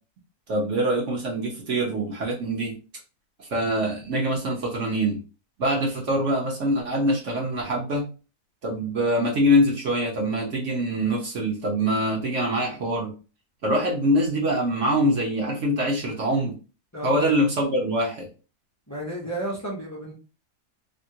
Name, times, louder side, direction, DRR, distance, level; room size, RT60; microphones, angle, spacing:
voice 1, 0.5-2.8 3.4-5.2 5.6-8.1 8.6-13.1 13.6-16.6 17.0-18.3, equal, 55° right, -1 dB, 1.1 m, -24 dB
voice 2, 16.9-17.3 18.9-20.1, right 1 dB, 25° left, -2 dB, 0.3 m, -32 dB
3.0 x 2.4 x 2.7 m, 0.34 s
omnidirectional pair, 1.7 m